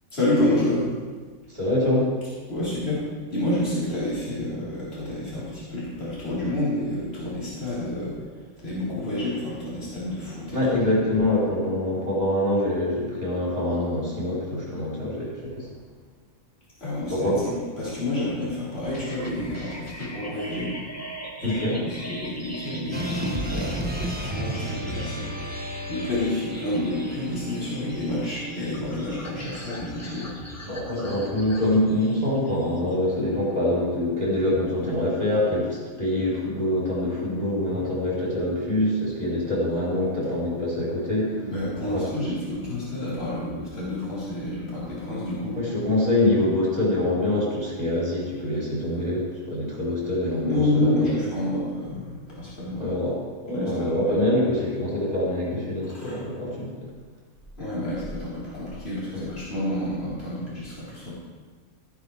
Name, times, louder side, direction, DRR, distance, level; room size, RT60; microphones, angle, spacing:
voice 1, 0.1-0.9 2.5-3.0 3.3-8.1 8.6-10.6 16.8-20.7 21.4-25.5 25.9-30.3 41.4-45.6 50.4-52.9 53.5-54.2 55.9-56.2 57.6-61.1, left 1 dB, 45° left, -11 dB, 5.0 m, -29 dB
voice 2, 1.5-2.1 10.5-15.7 17.1-17.4 21.4-21.8 30.6-41.5 41.8-42.2 45.6-51.1 52.8-53.2 53.4-56.7 59.1-59.3, left 1 dB, 25° right, -7 dB, 4.4 m, -25 dB
sound 1, 18.9-32.9, right 1 dB, 10° left, 1.6 m, -39 dB
sound 2, 22.9-31.3, right 1 dB, 10° right, 0.9 m, -35 dB
15.5 x 10.5 x 3.6 m, 1.5 s
omnidirectional pair, 1.5 m